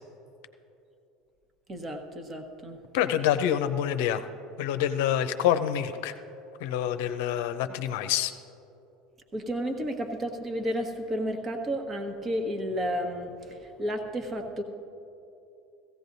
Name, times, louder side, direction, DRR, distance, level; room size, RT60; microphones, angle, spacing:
voice 1, 1.7-2.8 9.3-14.6, equal, 30° right, 4 dB, 1.4 m, -32 dB
voice 2, 2.9-4.2 4.6-6.1 6.6-8.3, left 10 dB, 70° left, 9 dB, 0.6 m, -26 dB
17.0 x 15.0 x 2.7 m, 2.9 s
hypercardioid pair, 80°, 0 cm